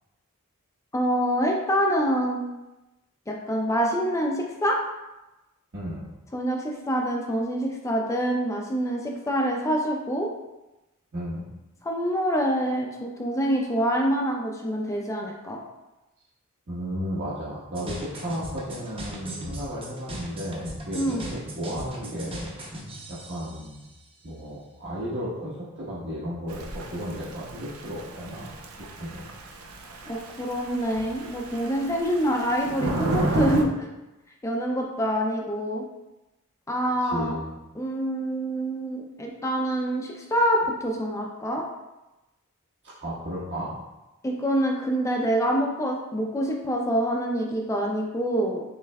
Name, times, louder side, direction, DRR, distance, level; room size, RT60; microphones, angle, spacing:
voice 1, 0.9-2.4 3.3-4.8 6.3-10.3 11.8-15.6 20.9-21.2 30.1-33.7 34.4-35.8 36.7-37.4 37.8-41.6 44.2-48.6, equal, 15° left, 0 dB, 0.4 m, -26 dB
voice 2, 5.7-6.0 11.1-11.4 16.7-22.5 23.1-23.8 24.2-28.5 29.0-29.3 32.8-33.4 37.0-37.6 42.8-43.7, equal, 55° right, -11 dB, 1.2 m, -34 dB
sound 1, 17.7-24.0, equal, 25° right, 0.7 m, -38 dB
Thunder / Rain, 26.5-33.7, right 2 dB, 90° right, 0.6 m, -32 dB
6.7 x 3.1 x 2.3 m, 1.0 s
head